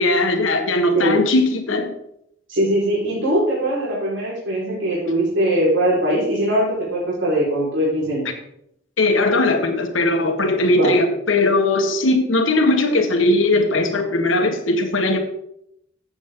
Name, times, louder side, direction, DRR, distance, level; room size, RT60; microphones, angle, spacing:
voice 1, 0.0-1.9 9.0-15.2, left 2 dB, 85° left, 6 dB, 1.6 m, -19 dB
voice 2, 2.5-8.3 10.8-10.9, right 1 dB, 75° right, -7 dB, 4.9 m, -21 dB
12.5 x 8.7 x 3.9 m, 0.75 s
head